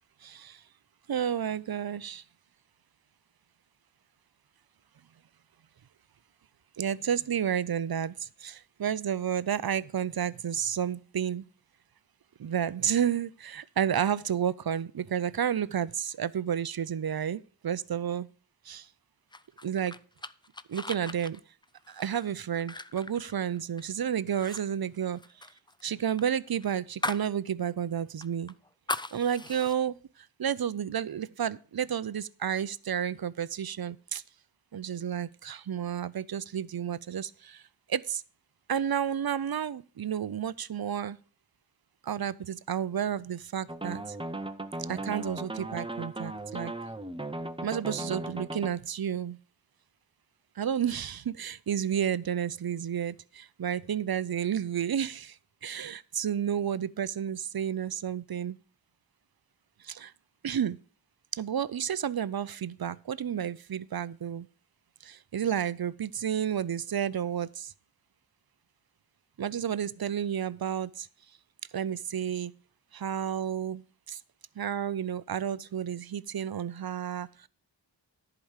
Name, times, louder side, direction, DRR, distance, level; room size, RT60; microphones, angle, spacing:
voice 1, 0.2-0.6 1.1-2.2 6.8-11.4 12.4-18.3 18.7-18.9 19.6-19.9 20.7-21.4 21.9-25.2 25.8-28.5 29.1-34.2 34.7-37.6 37.9-38.2 38.7-41.2 42.0-44.2 44.9-46.7 47.6-49.4 50.6-58.6 59.8-60.1 60.4-60.8 61.3-64.5 65.0-67.7 69.4-71.1 71.7-72.5 72.9-73.8 74.1-74.2 74.6-77.5, right 9 dB, 55° right, 0.5 m, -31 dB
sound 1, 19.3-23.9 24.3-24.6 24.9-27.3 27.7-27.8 28.2-29.8, left 2 dB, 10° left, 0.4 m, -39 dB
Dark Time Funky Sequence, 43.7-48.7, right 2 dB, 10° right, 0.7 m, -37 dB
10.5 x 4.9 x 7.2 m
wide cardioid pair, 45°, 45 cm